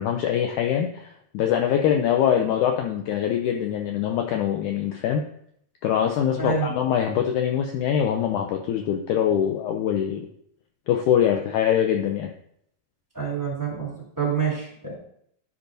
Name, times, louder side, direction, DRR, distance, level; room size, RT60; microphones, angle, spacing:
voice 1, 0.0-5.2 5.8-10.3 10.9-12.3, left 9 dB, 85° left, 3 dB, 1.7 m, -23 dB
voice 2, 6.4-6.7 13.1-14.9, right 6 dB, 5° right, -6 dB, 2.2 m, -27 dB
12.5 x 5.4 x 2.6 m, 0.69 s
omnidirectional pair, 4.2 m